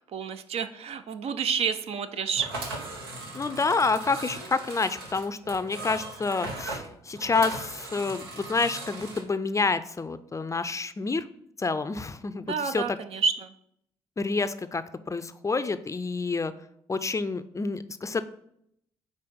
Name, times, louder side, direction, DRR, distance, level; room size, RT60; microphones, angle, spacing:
voice 1, 0.1-2.5 12.5-13.5, right 6 dB, 55° right, 9 dB, 0.5 m, -29 dB
sound 1, 2.3-9.2, right 2 dB, 85° right, 0.8 m, -38 dB
voice 2, 3.3-11.3 11.6-13.0 14.2-16.5 16.9-18.2, left 4 dB, 25° left, 12 dB, 0.5 m, -28 dB
5.0 x 4.0 x 5.4 m, 0.71 s
hypercardioid pair, 40°, 12 cm